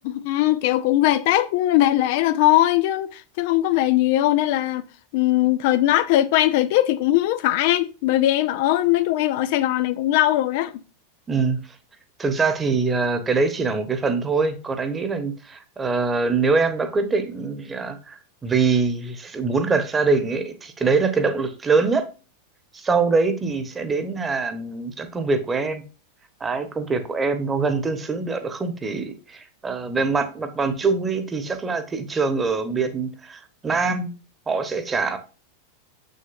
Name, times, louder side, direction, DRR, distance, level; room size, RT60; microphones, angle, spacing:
voice 1, 0.0-4.8 5.1-10.7, left 14 dB, 50° left, 0.5 m, -20 dB
voice 2, 11.3-11.6 12.2-22.1 22.7-25.8 26.4-34.1 34.5-35.2, right 4 dB, 15° right, 1.2 m, -23 dB
7.3 x 6.6 x 2.6 m
figure-of-eight pair, 90°, 0 cm